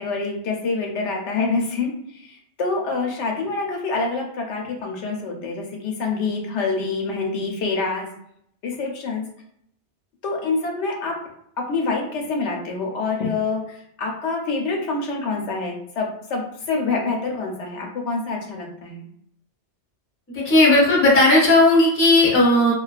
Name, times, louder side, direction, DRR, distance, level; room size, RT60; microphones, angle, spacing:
voice 1, 0.0-8.1 8.6-9.2 10.2-11.2 11.6-19.1, left 3 dB, 85° left, 0 dB, 0.9 m, -26 dB
voice 2, 20.3-22.7, left 2 dB, 15° left, -4 dB, 0.5 m, -15 dB
2.3 x 2.3 x 2.3 m, 0.70 s
omnidirectional pair, 1.2 m